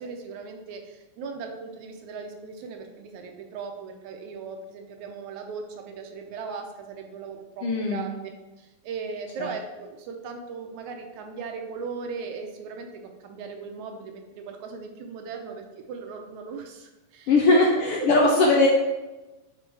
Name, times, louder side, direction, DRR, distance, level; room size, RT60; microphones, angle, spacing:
voice 1, 0.0-8.3 8.6-17.6 18.0-18.4, right 5 dB, 75° right, 4 dB, 2.1 m, -38 dB
voice 2, 7.6-8.0 9.4-9.5 17.3-18.7, left 2 dB, 70° left, -1 dB, 1.4 m, -20 dB
6.4 x 5.3 x 4.7 m, 1.1 s
omnidirectional pair, 3.5 m